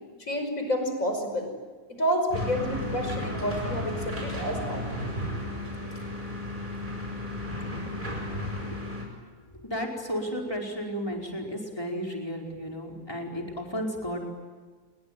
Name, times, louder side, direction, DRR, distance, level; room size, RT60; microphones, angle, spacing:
voice 1, 0.2-1.5 1.9-5.0, equal, 55° left, 5 dB, 5.9 m, -29 dB
sound 1, 2.3-9.0, left 1 dB, 30° right, 7.7 m, -33 dB
voice 2, 9.6-14.2, equal, 15° left, 0 dB, 5.0 m, -33 dB
28.0 x 22.5 x 9.3 m, 1.4 s
omnidirectional pair, 1.7 m